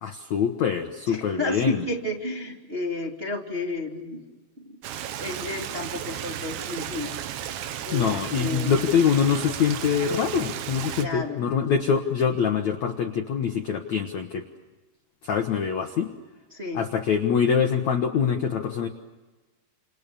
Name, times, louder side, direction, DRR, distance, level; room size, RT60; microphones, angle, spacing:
voice 1, 0.0-1.8 7.9-14.4 15.2-16.1 16.7-18.9, left 7 dB, 60° left, 5 dB, 1.9 m, -24 dB
voice 2, 1.1-4.2 4.6-4.8 5.2-7.6 7.8-9.0 11.0-11.4 16.5-16.8, left 2 dB, 20° right, 0 dB, 2.0 m, -32 dB
Stream, 4.8-11.1, right 10 dB, 80° right, 3.6 m, -34 dB
29.0 x 28.5 x 7.0 m, 1.2 s
omnidirectional pair, 5.0 m